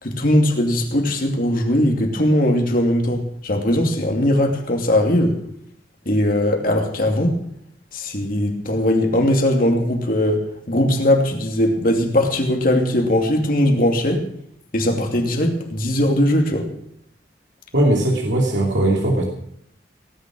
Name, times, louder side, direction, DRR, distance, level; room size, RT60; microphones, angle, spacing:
voice 1, 0.0-5.4 6.1-7.4 7.9-14.2 14.7-16.7, left 1 dB, 50° left, 2 dB, 2.7 m, -19 dB
voice 2, 17.7-19.2, right 1 dB, 90° right, 0 dB, 2.8 m, -19 dB
18.5 x 10.0 x 6.3 m, 0.70 s
head